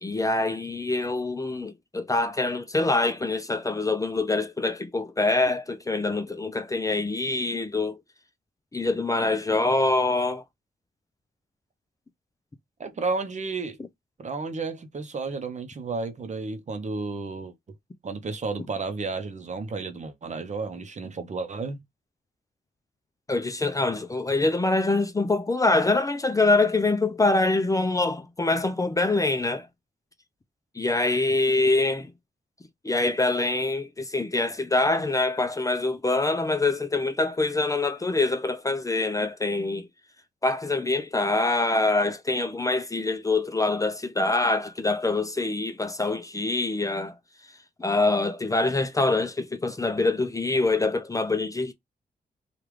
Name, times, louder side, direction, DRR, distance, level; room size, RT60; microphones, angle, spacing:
voice 1, 0.0-8.0 8.7-10.4 23.3-29.7 30.7-32.1 32.8-39.9 40.4-47.1 47.8-51.7, left 2 dB, 20° left, 0.5 m, -25 dB
voice 2, 12.8-13.8 14.2-17.5 18.0-21.8, right 4 dB, 45° right, 0.7 m, -32 dB
3.3 x 2.4 x 3.1 m
cardioid pair, 80°, 17 cm